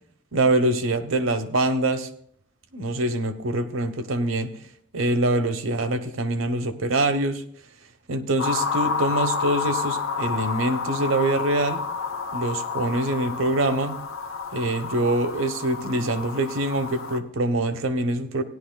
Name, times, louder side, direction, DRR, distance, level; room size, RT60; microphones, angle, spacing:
voice 1, 0.3-2.1 2.7-4.5 4.9-7.4 8.1-11.8 12.3-14.0 14.5-18.4, right 2 dB, 70° right, 9 dB, 1.0 m, -24 dB
sound 1, 8.4-17.2, left 5 dB, 75° left, 0.9 m, -30 dB
17.0 x 11.0 x 2.3 m, 0.68 s
head